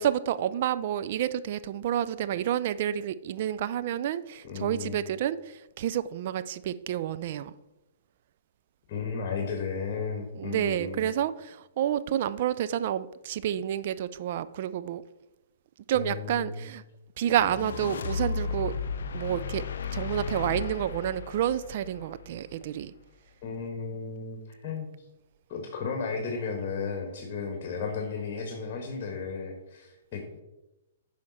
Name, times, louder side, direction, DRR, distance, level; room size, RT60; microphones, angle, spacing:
voice 1, 0.0-7.5 10.3-15.0 15.9-16.8 17.2-18.7 19.1-19.6 19.9-22.9, right 10 dB, 50° right, 14 dB, 0.4 m, -29 dB
voice 2, 4.4-5.0 8.9-11.1 15.9-16.7 23.4-24.9 25.5-30.4, left 5 dB, 35° left, 3 dB, 1.6 m, -34 dB
sound 1, 17.3-22.6, left 6 dB, 60° left, 0.6 m, -34 dB
9.6 x 5.7 x 4.3 m, 0.98 s
figure-of-eight pair, 120°, 0 cm